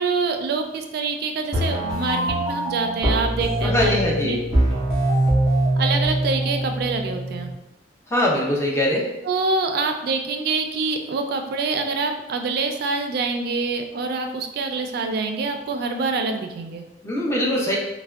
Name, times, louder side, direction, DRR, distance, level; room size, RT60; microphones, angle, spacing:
voice 1, 0.0-4.0 4.2-4.4 5.8-7.5 9.3-16.8, right 4 dB, 55° right, 5 dB, 0.3 m, -25 dB
sound 1, 1.5-7.5, right 1 dB, 5° right, 1.1 m, -23 dB
voice 2, 3.6-4.4 8.1-9.1 17.0-17.8, left 1 dB, 15° left, -3 dB, 0.5 m, -22 dB
3.4 x 2.1 x 2.3 m, 0.94 s
head